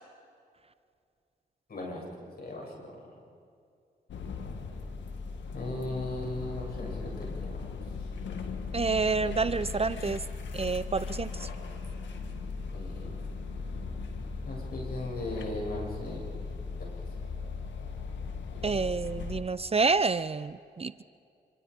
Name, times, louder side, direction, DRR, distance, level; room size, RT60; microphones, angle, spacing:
voice 1, 1.7-2.0 2.4-2.9 5.5-7.6 12.7-13.2 14.4-16.2 17.2-17.3, left 2 dB, 55° left, -2 dB, 7.9 m, -37 dB
sound 1, 4.1-19.4, left 4 dB, 80° left, 1.9 m, -38 dB
voice 2, 8.7-10.2 10.5-11.5 18.6-21.0, right 4 dB, 35° right, 15 dB, 0.6 m, -28 dB
26.5 x 25.0 x 5.1 m, 2.4 s
supercardioid pair, 50°, 19 cm